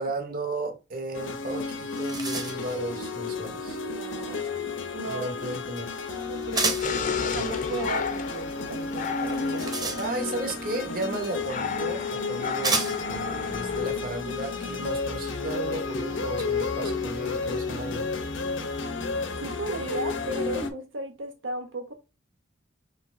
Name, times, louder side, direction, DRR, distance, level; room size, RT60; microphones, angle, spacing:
voice 1, 0.0-3.8 5.0-6.2 10.0-18.1, right 2 dB, 45° right, 1.1 m, -34 dB
sound 1, 1.1-20.7, left 4 dB, 85° left, 0.9 m, -32 dB
sound 2, 1.4-1.5 1.8-2.8 6.5-7.0 9.2-10.4 11.5-11.6 12.6-13.2, right 3 dB, 20° right, 0.8 m, -30 dB
voice 2, 3.8-4.5 4.9-5.3 6.3-10.0 19.4-21.9, right 2 dB, 80° right, 0.7 m, -35 dB
sound 3, 6.8-13.9, left 5 dB, 40° left, 0.5 m, -34 dB
4.5 x 3.1 x 3.7 m
head